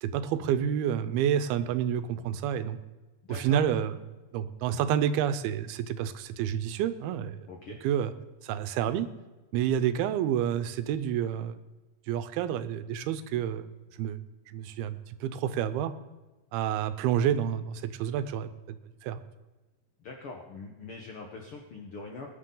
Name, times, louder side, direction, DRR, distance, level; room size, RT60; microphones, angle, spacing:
voice 1, 0.0-2.8 3.3-4.0 4.3-7.4 7.8-8.1 8.4-9.1 9.5-11.6 12.1-14.2 14.5-15.9 16.5-18.5 19.0-19.2, right 9 dB, 90° right, 12 dB, 2.7 m, -29 dB
voice 2, 3.2-3.6 7.5-7.8 20.0-22.3, left 3 dB, 75° left, 1 dB, 1.2 m, -42 dB
20.0 x 9.8 x 3.8 m, 1.1 s
omnidirectional pair, 4.3 m